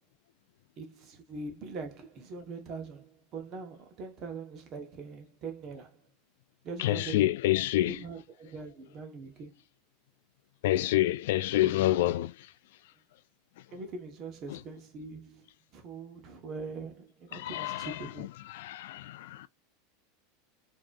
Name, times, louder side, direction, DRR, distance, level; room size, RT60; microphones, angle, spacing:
voice 1, 0.8-6.0 6.6-7.3 7.9-9.5 11.5-11.7 13.7-18.3, right 4 dB, 35° right, 1.2 m, -42 dB
voice 2, 6.8-8.0 10.6-12.5 14.5-14.6 17.3-19.5, left 15 dB, 70° left, 0.3 m, -28 dB
4.9 x 2.9 x 2.5 m
supercardioid pair, 160°, 0 cm